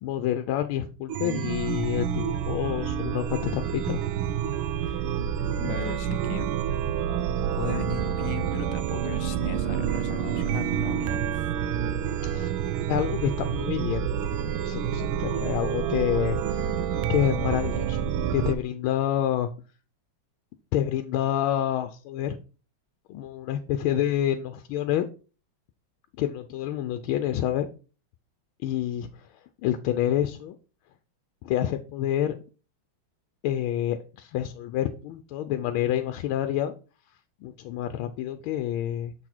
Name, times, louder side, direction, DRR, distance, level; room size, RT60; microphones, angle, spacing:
voice 1, 0.0-4.0 12.2-12.5 12.9-14.1 14.6-16.8 17.1-19.5 20.7-22.4 23.1-25.1 26.2-27.7 28.6-30.6 31.4-32.4 33.4-36.7 37.4-39.1, left 11 dB, 85° left, 1.4 m, -28 dB
Chime, 1.1-18.5, right 9 dB, 85° right, 1.4 m, -28 dB
voice 2, 5.6-6.5 7.6-11.5, left 8 dB, 70° left, 1.2 m, -37 dB
7.0 x 4.1 x 4.4 m
omnidirectional pair, 2.2 m